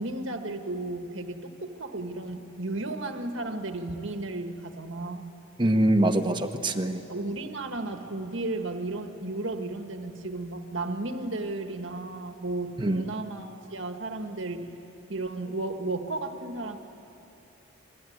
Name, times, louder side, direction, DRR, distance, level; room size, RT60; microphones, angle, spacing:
voice 1, 0.0-5.3 7.1-14.8 15.1-16.8, right 2 dB, 60° right, 5 dB, 1.6 m, -34 dB
voice 2, 5.6-7.0 12.8-13.0, right 1 dB, 20° right, 6 dB, 1.2 m, -24 dB
28.0 x 22.0 x 9.4 m, 2.9 s
head